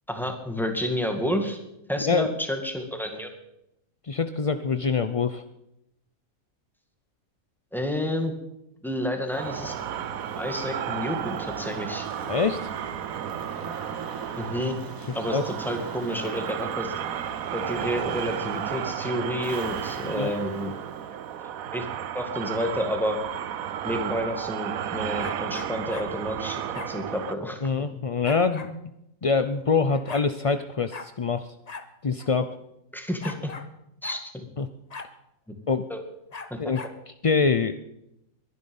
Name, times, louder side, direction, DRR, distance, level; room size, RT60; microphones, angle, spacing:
voice 1, 0.1-1.6 1.9-3.3 7.7-8.3 8.8-9.8 10.4-12.1 14.4-14.8 15.1-16.9 17.5-20.7 21.7-21.9 22.1-23.2 23.8-27.7 32.9-33.5 34.0-34.5 35.9-36.0 36.5-36.6, equal, ahead, 5 dB, 2.2 m, -30 dB
voice 2, 4.0-5.4 12.3-12.6 15.3-15.5 20.0-20.3 27.6-28.9 29.2-31.5 32.0-32.5 34.6-34.7 35.7-35.8 36.6-36.8 37.2-37.7, left 4 dB, 45° left, 10 dB, 0.4 m, -24 dB
sound 1, 9.3-22.1, right 1 dB, 15° right, 2.1 m, -44 dB
sound 2, 9.4-27.3, right 10 dB, 75° right, 1.2 m, -33 dB
sound 3, 25.2-26.1 26.7-26.9 28.2-28.7 29.6-29.7 29.9-30.3 30.9-31.1 31.7-31.9 32.2-32.3 33.2-33.7 34.0-34.2 34.9-35.1 36.3-37.0, left 4 dB, 30° left, 1.0 m, -39 dB
22.0 x 10.5 x 5.5 m, 0.84 s
omnidirectional pair, 1.5 m